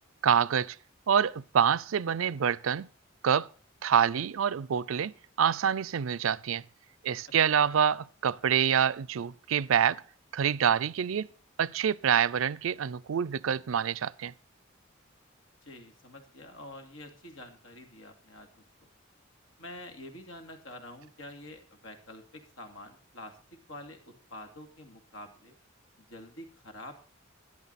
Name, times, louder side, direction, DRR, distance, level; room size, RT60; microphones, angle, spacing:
voice 1, 0.2-0.8 1.1-2.9 3.2-3.5 3.8-5.1 5.4-6.6 7.0-10.0 10.3-11.3 11.6-14.3, right 8 dB, 80° right, 0.4 m, -26 dB
voice 2, 15.6-18.9 19.6-23.4 23.7-25.6 26.0-27.1, left 1 dB, 75° left, 2.6 m, -47 dB
12.5 x 11.0 x 4.1 m
head